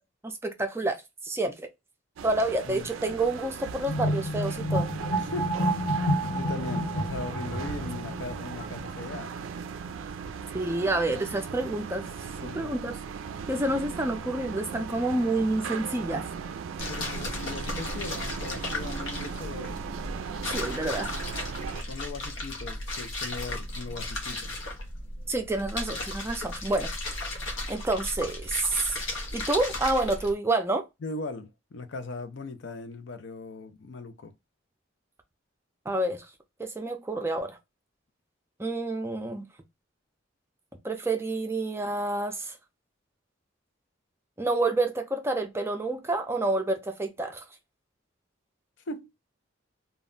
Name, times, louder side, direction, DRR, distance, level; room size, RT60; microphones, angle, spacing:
voice 1, 0.2-1.7 2.2-4.9 10.5-12.1 12.5-12.9 13.5-16.2 20.5-21.2 25.3-26.9 27.7-29.0 29.3-30.8 35.9-36.3 36.6-37.6 38.6-39.5 40.8-42.6 44.4-47.4, right 2 dB, 15° right, 0.4 m, -28 dB
sound 1, 2.2-21.8, right 6 dB, 90° right, 0.3 m, -38 dB
sound 2, 3.8-9.1, equal, 40° left, 0.8 m, -29 dB
voice 2, 5.2-5.9 6.3-9.3 12.4-12.7 16.9-19.8 21.6-24.6 31.0-34.3 48.9-49.1, left 3 dB, 65° left, 0.5 m, -39 dB
sound 3, 16.8-30.3, left 2 dB, 85° left, 0.8 m, -35 dB
2.3 x 2.1 x 3.6 m
head